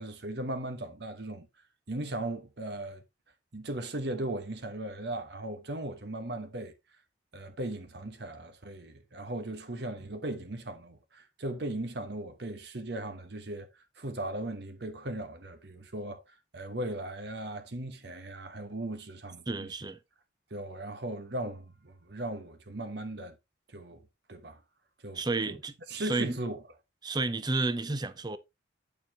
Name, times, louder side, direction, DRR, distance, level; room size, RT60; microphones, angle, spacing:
voice 1, 0.0-1.5 1.9-3.0 3.5-6.7 7.3-13.7 14.0-16.2 16.5-19.8 20.5-23.3 23.7-24.0 24.3-24.6 25.0-25.6 25.9-26.6, right 1 dB, 60° right, 1.1 m, -37 dB
voice 2, 19.5-20.0 25.1-26.4 27.0-28.4, right 3 dB, 20° right, 0.6 m, -31 dB
8.8 x 6.9 x 3.0 m
head